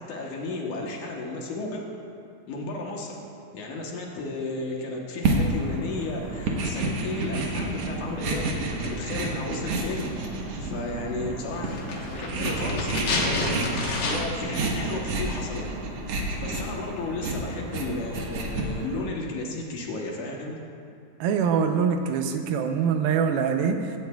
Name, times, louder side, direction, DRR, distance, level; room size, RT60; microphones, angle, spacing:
voice 1, 0.0-1.8 2.5-3.2 3.5-10.3 10.6-15.7 16.4-20.6, left 2 dB, 65° left, -1 dB, 2.3 m, -33 dB
sound 1, 5.2-19.0, right 2 dB, 70° right, 1.5 m, -30 dB
sound 2, 11.6-14.5 14.7-14.8, left 2 dB, 90° left, 1.0 m, -29 dB
voice 2, 21.2-23.9, right 6 dB, 85° right, 6 dB, 2.6 m, -24 dB
16.5 x 12.0 x 2.3 m, 2.4 s
omnidirectional pair, 4.2 m